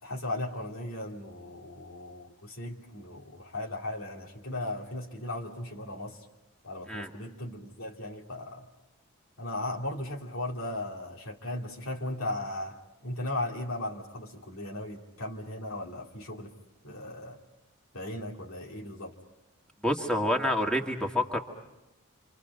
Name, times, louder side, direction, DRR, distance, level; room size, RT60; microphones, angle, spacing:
voice 1, 0.0-6.3 6.6-8.7 9.4-12.8 13.0-16.5 16.8-17.4 17.9-19.1, left 1 dB, 75° left, 0 dB, 2.5 m, -37 dB
voice 2, 19.8-21.4, left 1 dB, 5° left, 1 dB, 2.2 m, -28 dB
28.5 x 27.0 x 5.4 m, 0.99 s
head